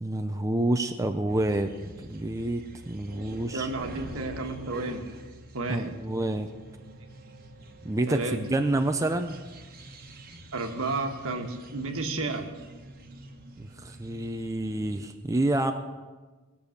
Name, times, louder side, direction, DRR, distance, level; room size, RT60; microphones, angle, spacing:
voice 1, 0.0-3.7 5.7-6.5 7.8-9.4 13.6-15.7, right 1 dB, 15° right, 6 dB, 0.5 m, -28 dB
sound 1, 1.3-15.1, right 1 dB, 40° right, 1.2 m, -46 dB
voice 2, 3.5-5.0 5.5-5.9 8.1-8.5 10.5-12.5, right 3 dB, 65° right, 5 dB, 1.3 m, -32 dB
19.0 x 6.9 x 6.5 m, 1.3 s
head